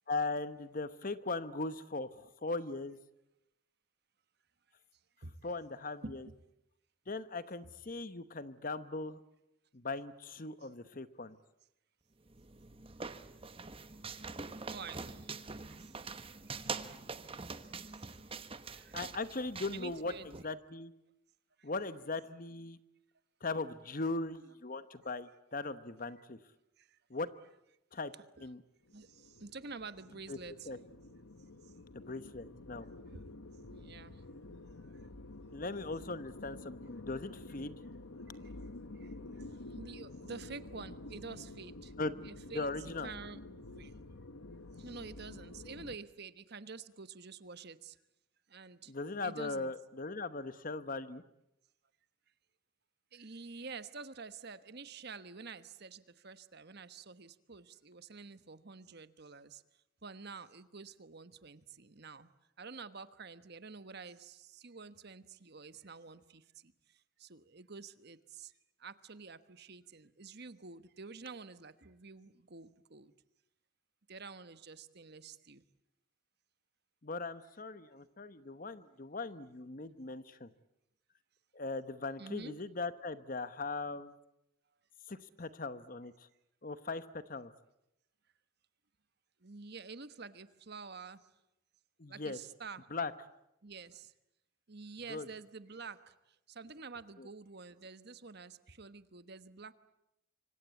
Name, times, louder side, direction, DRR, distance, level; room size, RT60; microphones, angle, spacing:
voice 1, 0.1-3.0 5.4-6.3 7.1-9.2 9.7-11.4 18.9-20.1 20.4-20.9 21.6-22.8 23.4-26.4 27.1-27.3 27.9-28.1 28.4-28.6 30.3-30.4 30.7-30.8 31.9-32.9 35.5-37.8 42.0-42.2 42.5-43.1 48.9-51.2 77.0-80.5 81.5-84.1 85.1-86.1 86.6-87.5 92.0-92.4 92.9-93.1 95.1-95.3 97.2-97.3, left 3 dB, 40° left, 13 dB, 1.0 m, -39 dB
voice 2, 6.0-6.3 14.7-17.0 17.9-18.4 18.7-19.0 19.7-20.3 21.6-21.7 26.8-27.0 28.4-28.5 28.9-30.7 31.6-31.7 33.1-33.3 33.7-34.2 34.9-35.0 38.3-41.9 42.2-44.0 44.8-48.0 48.5-48.9 49.2-49.7 53.1-59.6 60.0-62.3 62.6-68.5 68.8-73.1 74.1-75.6 82.2-82.6 89.4-91.3 92.1-92.9 93.6-94.1 94.7-99.7, right 4 dB, 50° right, 13 dB, 1.2 m, -49 dB
sound 1, 12.3-20.4, right 4 dB, 25° right, 1.1 m, -44 dB
sound 2, 28.8-46.0, left 2 dB, 75° left, 1.1 m, -50 dB
25.5 x 25.5 x 8.3 m, 0.86 s
head